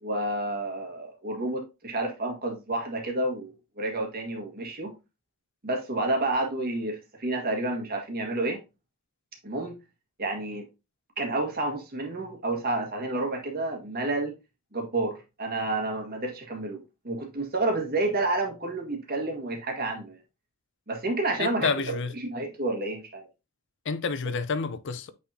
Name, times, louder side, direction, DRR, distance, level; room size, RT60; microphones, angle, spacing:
voice 1, 0.0-4.9 5.6-8.6 9.4-9.8 10.2-10.6 11.2-14.3 14.7-20.2 20.9-23.3, right 2 dB, 45° right, 1.7 m, -30 dB
voice 2, 21.4-22.1 23.9-25.1, left 5 dB, 55° left, 0.6 m, -29 dB
8.6 x 4.1 x 2.7 m
head